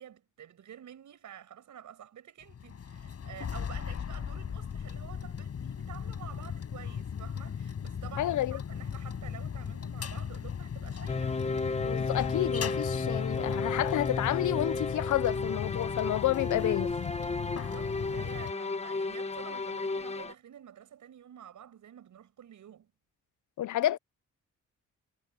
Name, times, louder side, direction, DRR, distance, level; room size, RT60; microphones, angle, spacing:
voice 1, 0.0-11.4 17.4-22.9, right 9 dB, 70° right, 7.1 m, -49 dB
sound 1, 2.4-18.5, left 7 dB, 50° left, 6.1 m, -37 dB
voice 2, 8.2-8.6 11.8-17.0 23.6-24.0, left 13 dB, 70° left, 0.6 m, -30 dB
sound 2, 11.1-20.3, left 3 dB, 20° left, 1.0 m, -33 dB
cardioid pair, 140°, 31 cm